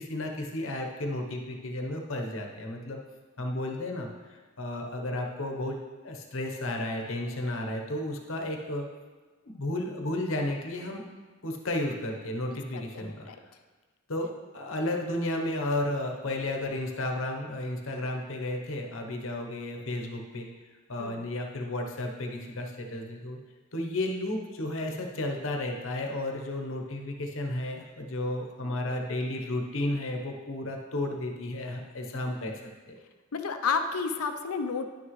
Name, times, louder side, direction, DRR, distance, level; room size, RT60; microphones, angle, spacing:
voice 1, 0.0-3.0 3.4-5.8 6.0-8.9 9.4-11.0 11.4-13.3 14.1-20.5 20.9-23.4 23.7-32.5, left 1 dB, 60° left, 2 dB, 0.9 m, -33 dB
voice 2, 12.5-13.4 21.0-21.3 33.3-34.9, left 5 dB, 85° left, 7 dB, 0.6 m, -31 dB
10.5 x 6.3 x 3.2 m, 1.3 s
head